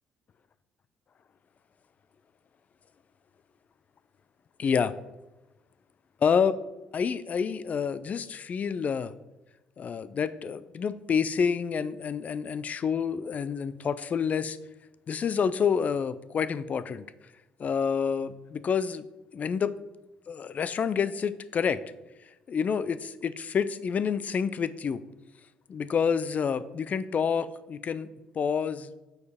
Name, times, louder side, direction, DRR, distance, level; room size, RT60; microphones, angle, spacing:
voice 1, 4.6-4.9 6.2-6.6 6.9-9.1 9.8-14.6 15.1-17.0 17.6-19.0 19.3-19.7 20.3-21.8 22.5-25.0 25.7-28.1 28.4-28.9, left 6 dB, 45° left, 16 dB, 0.4 m, -28 dB
6.4 x 4.8 x 3.5 m, 1.0 s
supercardioid pair, 65°, 4 cm